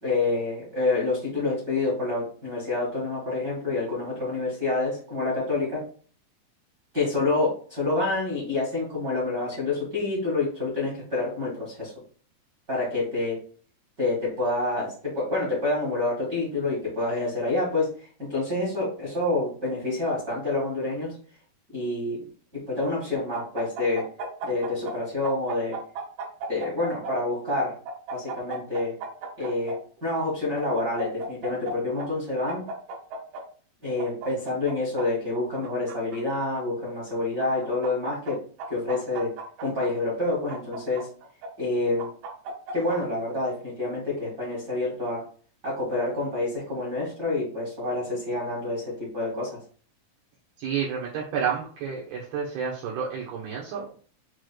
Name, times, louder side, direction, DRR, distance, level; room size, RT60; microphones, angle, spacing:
voice 1, 0.0-5.8 6.9-11.9 12.7-13.4 14.0-21.1 21.7-22.2 22.5-24.1 24.4-25.8 26.5-27.7 28.1-28.9 29.4-29.7 30.0-32.6 33.8-38.4 38.7-39.3 39.6-41.1 41.6-42.1 42.7-45.2 45.6-49.6, left 2 dB, 45° right, -6 dB, 1.3 m, -27 dB
sound 1, 23.3-24.9 25.2-27.1 27.6-29.7 30.6-31.7 32.0-32.1 32.5-33.4 34.0-35.0 35.6-36.6 37.4-38.3 38.6-39.9 40.5-41.5 42.0-43.0, right 3 dB, 60° right, 2.6 m, -35 dB
voice 2, 50.6-54.0, right 7 dB, 75° right, -4 dB, 2.4 m, -30 dB
7.6 x 3.0 x 2.3 m, 0.43 s
omnidirectional pair, 5.0 m